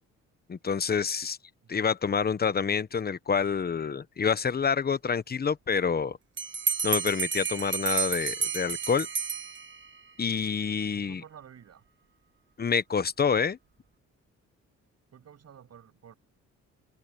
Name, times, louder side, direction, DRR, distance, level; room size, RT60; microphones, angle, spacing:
voice 1, 0.5-1.4 1.7-6.2 6.8-9.1 10.2-11.2 12.6-13.6, left 6 dB, 30° left, 1.1 m, -27 dB
Bell, 6.4-10.0, right 6 dB, 40° right, 1.7 m, -31 dB
voice 2, 10.9-11.8 15.1-16.1, right 8 dB, 55° right, 7.2 m, -51 dB
cardioid pair, 90°, 30 cm